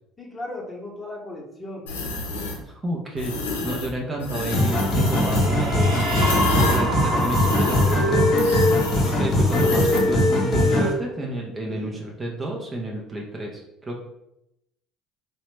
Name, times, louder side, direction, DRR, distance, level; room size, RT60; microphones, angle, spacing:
voice 1, 0.2-1.9 11.7-12.0, left 2 dB, 20° left, -2 dB, 0.9 m, -36 dB
sound 1, 1.9-2.6 3.2-3.9 4.2-10.1, left 3 dB, 85° left, 0.5 m, -30 dB
voice 2, 2.6-6.0 6.5-8.3 8.9-14.0, right 1 dB, 25° right, 0 dB, 0.6 m, -30 dB
sound 2, 4.5-10.9, left 1 dB, 40° left, 1.0 m, -21 dB
sound 3, 4.7-10.5, right 1 dB, 60° right, 1.0 m, -28 dB
2.8 x 2.2 x 3.1 m, 0.84 s
hypercardioid pair, 70°, 0 cm